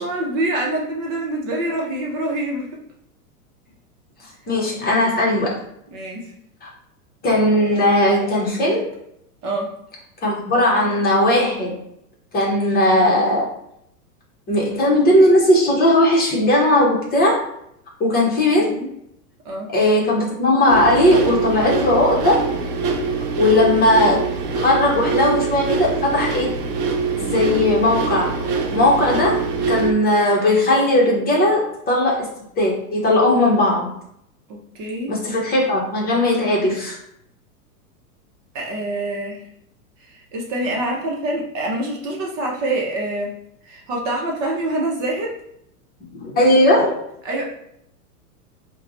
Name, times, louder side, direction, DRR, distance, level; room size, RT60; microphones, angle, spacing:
voice 1, 0.0-2.8 5.9-6.3 9.4-9.7 18.5-18.9 19.4-19.7 34.5-35.2 38.5-39.4 40.0-43.3 43.6-45.4 47.2-47.4, right 1 dB, 40° right, -1 dB, 0.9 m, -26 dB
voice 2, 4.5-5.6 6.6-6.7 7.2-8.9 10.2-11.7 12.3-13.5 14.5-17.4 18.0-18.8 19.7-22.4 23.4-24.3 24.6-26.5 27.2-28.3 28.7-29.4 29.7-32.3 32.6-33.9 35.1-36.9 46.1-47.0, left 1 dB, 20° left, -3 dB, 0.9 m, -17 dB
sound 1, 20.7-29.9, right 4 dB, 75° right, 0.7 m, -24 dB
4.4 x 2.3 x 2.6 m, 0.75 s
hypercardioid pair, 115°, 46 cm